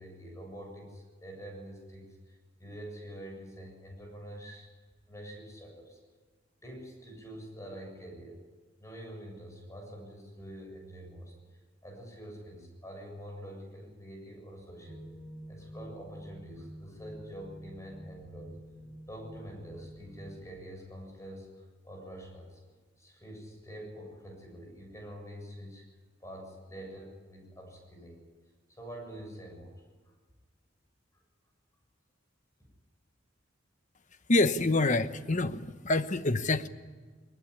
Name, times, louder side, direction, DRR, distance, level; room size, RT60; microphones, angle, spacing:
voice 1, 0.0-4.7 5.1-6.0 6.6-8.4 8.8-15.1 15.5-18.5 19.1-22.6 23.0-25.8 26.2-28.2 28.7-29.8, equal, 15° left, 2 dB, 7.3 m, -46 dB
sound 1, 14.9-20.5, equal, 5° right, 5.4 m, -48 dB
voice 2, 34.3-36.7, left 2 dB, 40° left, 11 dB, 1.0 m, -26 dB
21.0 x 20.5 x 9.9 m, 1.4 s
head